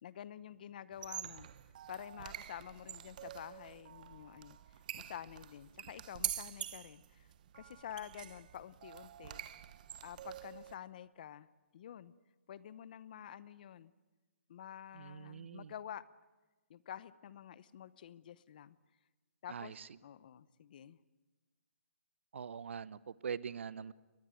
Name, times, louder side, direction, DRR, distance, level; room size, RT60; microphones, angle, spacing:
voice 1, 0.0-1.5 1.9-7.3 7.6-9.4 10.0-11.5 11.7-12.1 12.5-13.9 14.5-16.0 16.7-18.8 19.4-21.0, left 10 dB, 40° left, 18 dB, 0.9 m, -49 dB
sound 1, 0.9-10.7, right 11 dB, 35° right, 1.0 m, -46 dB
voice 2, 15.0-15.7 19.5-19.7 22.3-23.9, right 7 dB, 60° right, 19 dB, 0.9 m, -43 dB
22.0 x 20.0 x 9.1 m, 1.2 s
hypercardioid pair, 160°, 7 cm